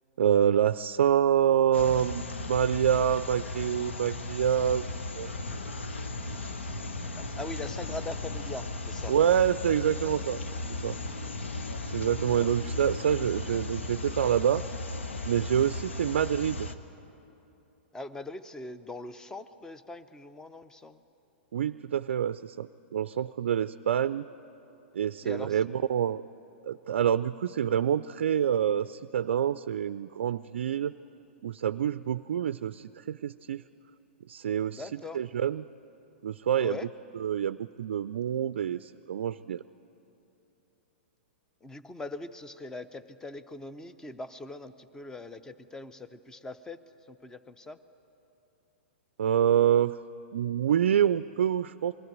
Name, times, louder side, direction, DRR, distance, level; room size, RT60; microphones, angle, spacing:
voice 1, 0.2-4.9 5.1-5.3 9.1-10.4 10.7-11.0 11.9-14.6 15.2-16.7 21.5-24.2 24.9-26.2 26.6-30.9 31.4-33.6 34.3-34.9 35.1-35.7 36.2-36.8 37.2-39.6 49.2-50.0 50.3-51.9, right 9 dB, 75° right, 13 dB, 0.4 m, -26 dB
sound 1, 1.7-16.7, left 2 dB, 85° left, 1.1 m, -36 dB
voice 2, 7.0-9.1 12.3-12.6 17.9-21.0 25.2-25.7 34.7-35.2 36.6-36.9 41.6-46.8 47.1-47.8, left 3 dB, 10° left, 13 dB, 0.7 m, -41 dB
22.0 x 15.0 x 9.3 m, 3.0 s
hypercardioid pair, 115°, 6 cm